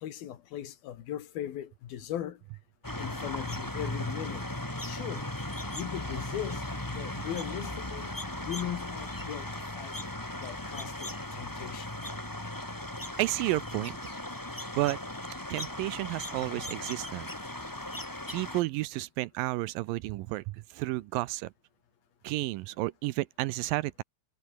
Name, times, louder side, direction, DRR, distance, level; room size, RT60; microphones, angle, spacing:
voice 1, 0.0-2.4 3.0-4.4 4.9-5.3 5.7-6.7 6.9-8.1 8.4-9.5 9.8-9.9 10.4-12.1, left 11 dB, 70° left, 3.6 m, -38 dB
sound 1, 2.8-18.6, left 1 dB, 10° left, 0.9 m, -37 dB
voice 2, 13.2-14.0 14.8-15.0 15.5-17.3 18.3-21.5 22.2-24.0, right 19 dB, 80° right, 2.1 m, -31 dB
omnidirectional pair, 4.5 m